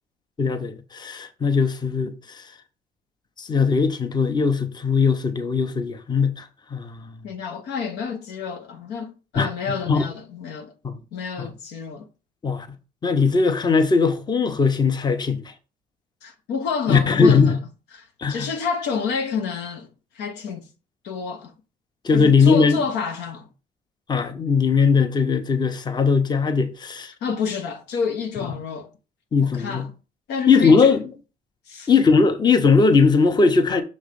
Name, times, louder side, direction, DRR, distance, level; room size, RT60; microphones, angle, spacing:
voice 1, 0.4-2.4 3.4-7.1 9.4-9.5 9.9-10.1 10.8-11.0 11.4-11.5 12.4-12.7 13.0-15.4 16.9-17.6 18.2-18.5 22.0-22.8 24.1-27.1 28.4-28.5 29.3-29.9 30.5-31.0 31.9-33.8, left 5 dB, 25° left, 0.8 m, -19 dB
voice 2, 7.2-10.7 11.1-12.1 16.2-17.6 17.9-19.9 20.1-20.7 21.0-21.5 22.1-23.5 27.2-28.9 29.4-29.9 30.3-31.0 31.7-31.9, left 6 dB, 85° left, 1.1 m, -29 dB
6.2 x 3.2 x 5.3 m
cardioid pair, 110°, 17 cm